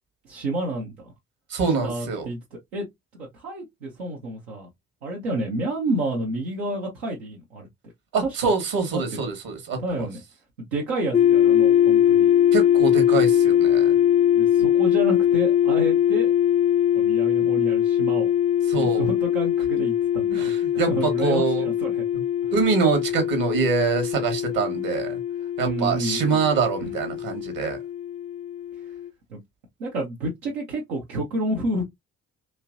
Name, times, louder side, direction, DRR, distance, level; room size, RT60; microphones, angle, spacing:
voice 1, 0.2-1.1 1.8-2.4 2.7-2.9 3.2-4.7 5.0-7.7 8.4-8.5 8.9-9.0 9.8-10.2 10.7-12.3 14.3-16.3 16.9-18.3 18.7-22.0 22.4-22.5 25.6-26.5 26.8-26.9 29.3-29.4 29.8-31.8, right 1 dB, 80° right, 0.8 m, -30 dB
voice 2, 1.5-2.3 8.1-10.1 12.5-14.0 18.7-19.1 20.3-21.7 22.1-22.2 22.5-25.2 25.6-27.8, right 5 dB, 55° right, 1.4 m, -25 dB
sound 1, 11.1-29.1, left 10 dB, 20° left, 0.3 m, -21 dB
3.2 x 2.9 x 2.5 m
figure-of-eight pair, 40°, 40 cm